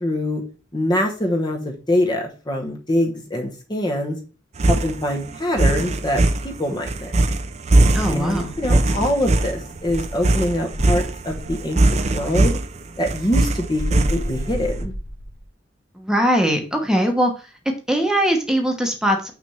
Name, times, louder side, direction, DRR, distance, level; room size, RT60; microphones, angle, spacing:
voice 1, 0.0-0.4 0.7-4.2 4.7-7.1 8.1-12.6 13.0-14.9, left 1 dB, 20° left, 2 dB, 1.0 m, -24 dB
sound 1, 4.6-14.6, right 2 dB, 35° right, 0.5 m, -20 dB
voice 2, 7.9-8.5 16.0-17.3 17.9-19.3, equal, 5° right, 2 dB, 1.1 m, -20 dB
Insect, 8.2-10.2 10.7-12.1 13.8-15.4, equal, 55° left, 1.3 m, -31 dB
6.1 x 3.4 x 5.5 m, 0.34 s
head